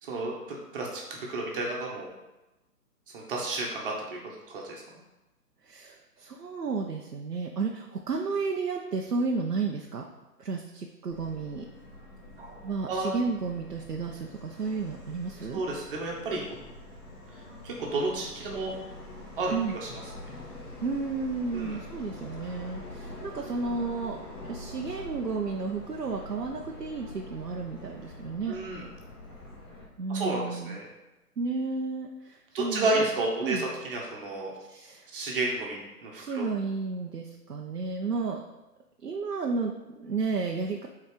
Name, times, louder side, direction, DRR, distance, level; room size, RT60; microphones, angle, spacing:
voice 1, 0.0-2.1 3.1-4.2 4.5-4.8 12.4-13.1 15.5-16.4 17.6-18.8 19.4-19.5 19.8-19.9 21.5-21.8 28.5-28.8 30.1-30.9 32.5-34.5 35.1-36.5, right 2 dB, 35° right, -2 dB, 1.7 m, -31 dB
voice 2, 5.6-10.0 10.4-11.7 12.6-15.6 19.5-19.8 20.8-24.2 24.4-28.6 30.0-30.8 31.4-33.1 33.4-33.7 34.7-35.1 36.2-38.4 39.0-40.9, right 4 dB, 70° right, 1 dB, 0.9 m, -32 dB
Subway metro underground, 11.1-29.8, left 1 dB, 15° left, 0.8 m, -45 dB
6.2 x 4.3 x 5.1 m, 1.0 s
figure-of-eight pair, 135°, 48 cm